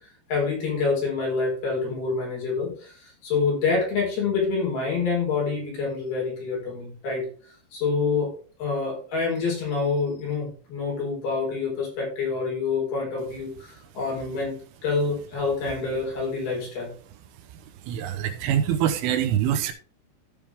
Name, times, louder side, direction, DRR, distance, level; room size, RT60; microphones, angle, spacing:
voice 1, 0.3-7.3 7.7-8.3 8.6-14.6 14.8-16.9, left 4 dB, 50° left, -3 dB, 6.1 m, -27 dB
voice 2, 17.9-19.7, right 10 dB, 80° right, 8 dB, 3.5 m, -24 dB
14.5 x 5.3 x 3.5 m, 0.41 s
omnidirectional pair, 5.7 m